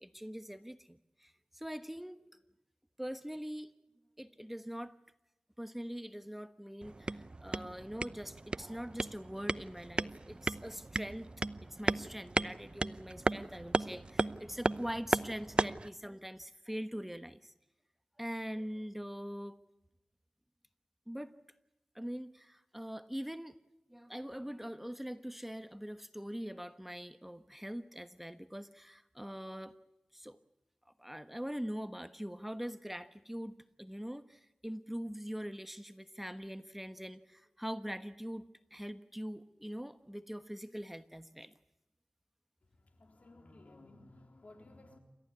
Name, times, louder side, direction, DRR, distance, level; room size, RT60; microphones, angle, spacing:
voice 1, 0.0-2.2 3.0-3.7 4.2-4.9 5.6-11.3 11.6-17.5 18.2-19.6 21.1-21.3 21.9-23.6 23.9-29.8 30.1-30.4 31.0-41.5, equal, 5° right, 11 dB, 1.2 m, -43 dB
sound 1, 6.8-15.9, right 2 dB, 40° right, 0.7 m, -36 dB
voice 2, 42.6-45.0, left 2 dB, 70° left, 5 dB, 3.8 m, -57 dB
28.5 x 14.5 x 9.6 m, 0.91 s
cardioid pair, 45°, 3 cm